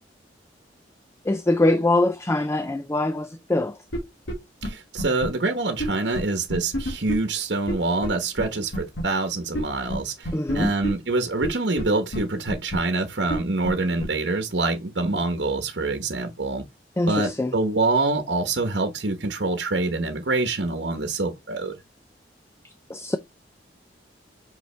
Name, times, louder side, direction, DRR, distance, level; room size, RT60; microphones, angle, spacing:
voice 1, 1.3-3.8 10.3-10.7 17.0-17.5 22.9-23.2, left 2 dB, 15° left, 0.4 m, -23 dB
sound 1, 3.9-4.0 4.3-4.4 4.6-4.7 5.0-5.3 5.8-5.9 6.1-6.2 6.5-7.1 7.7-7.8 8.0-8.1 8.4-8.5 8.7-9.0 9.5-9.6 9.9-10.0 10.2-10.9 11.4-11.5 11.8-11.9 12.1-12.2 12.5-12.8 13.3-13.4 13.6-13.7 14.0-14.1, equal, 90° left, 2.2 m, -28 dB
voice 2, 4.6-16.6 17.1-21.8, right 3 dB, 65° right, 1.1 m, -25 dB
5.6 x 5.2 x 3.3 m
head